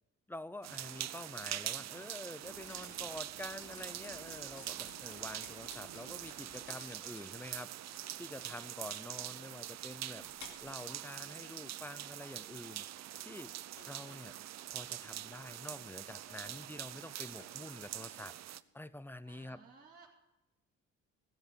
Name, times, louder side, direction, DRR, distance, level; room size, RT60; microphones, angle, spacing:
voice 1, 0.3-7.7 8.2-10.2 10.6-12.8 13.2-13.5 13.9-14.3 14.7-18.3 18.7-19.6, left 1 dB, 5° left, 16 dB, 0.6 m, -47 dB
sound 1, 0.6-18.6, right 13 dB, 60° right, 0.6 m, -44 dB
sound 2, 2.4-19.4, left 4 dB, 70° left, 2.8 m, -58 dB
voice 2, 19.2-20.1, right 4 dB, 25° right, -6 dB, 2.8 m, -60 dB
17.0 x 7.5 x 6.8 m, 0.99 s
cardioid pair, 90°, 30 cm